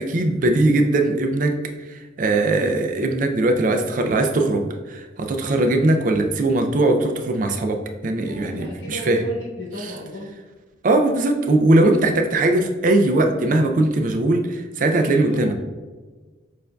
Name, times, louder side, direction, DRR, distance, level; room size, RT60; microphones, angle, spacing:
voice 1, 0.0-1.5 1.9-9.2 9.8-9.9 10.8-15.5, right 2 dB, 45° right, 5 dB, 0.4 m, -20 dB
voice 2, 8.3-10.3 15.0-15.5, left 1 dB, 65° left, -3 dB, 0.9 m, -35 dB
6.5 x 2.5 x 2.2 m, 1.3 s
head